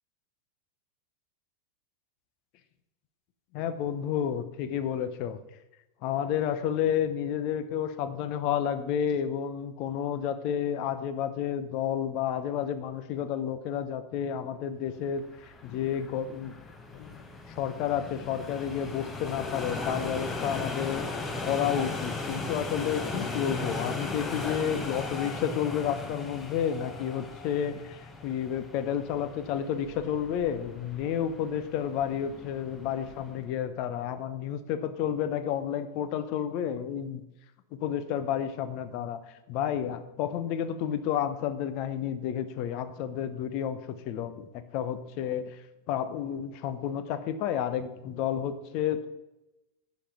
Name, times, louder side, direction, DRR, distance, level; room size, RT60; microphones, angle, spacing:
voice 1, 3.5-5.4 6.0-16.5 16.9-37.2 37.7-39.2 39.5-45.6 45.9-49.1, left 9 dB, 40° left, 12 dB, 0.8 m, -31 dB
sound 1, 15.2-33.5, left 3 dB, 15° left, 1.1 m, -37 dB
10.0 x 5.3 x 5.8 m, 0.96 s
figure-of-eight pair, 90°, 0 cm